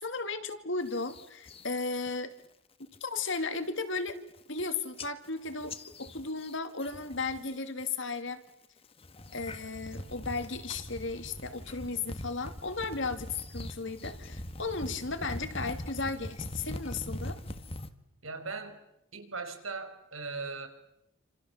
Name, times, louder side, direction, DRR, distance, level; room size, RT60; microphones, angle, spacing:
voice 1, 0.0-2.3 3.0-4.2 4.5-5.7 6.0-8.4 9.3-17.4, left 3 dB, 65° left, 9 dB, 2.5 m, -35 dB
sound 1, 0.8-1.7 2.1-2.4 2.8-3.2 3.6-3.7 4.0-4.6 5.0-7.5 7.8-8.3 8.8-17.9, left 1 dB, 25° left, 1.4 m, -42 dB
voice 2, 18.2-18.8 19.1-20.7, right 4 dB, 80° right, 7 dB, 5.1 m, -39 dB
29.0 x 27.0 x 7.3 m, 0.83 s
head